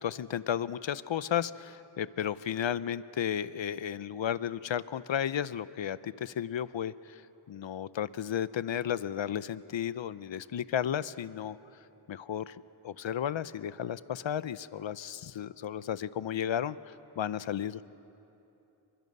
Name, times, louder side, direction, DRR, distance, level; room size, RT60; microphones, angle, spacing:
voice 1, 0.0-7.2 7.5-11.6 12.1-12.6 12.8-17.8, left 9 dB, 65° left, 17 dB, 0.7 m, -33 dB
28.5 x 23.5 x 5.4 m, 3.0 s
wide cardioid pair, 65°, 50 cm